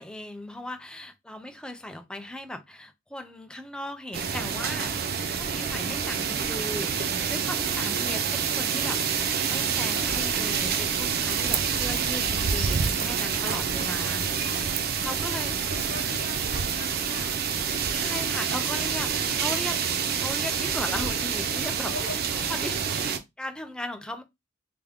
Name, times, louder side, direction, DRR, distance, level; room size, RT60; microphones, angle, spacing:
voice 1, 0.0-4.9 5.4-14.6 15.0-15.5 17.9-19.8 20.1-21.9 22.5-24.2, left 1 dB, 5° left, 0.4 m, -37 dB
sound 1, 4.1-23.2, right 6 dB, 55° right, 0.5 m, -27 dB
voice 2, 14.0-14.6 14.9-17.3 21.8-22.5, left 3 dB, 85° left, 0.8 m, -42 dB
3.4 x 2.1 x 3.5 m
head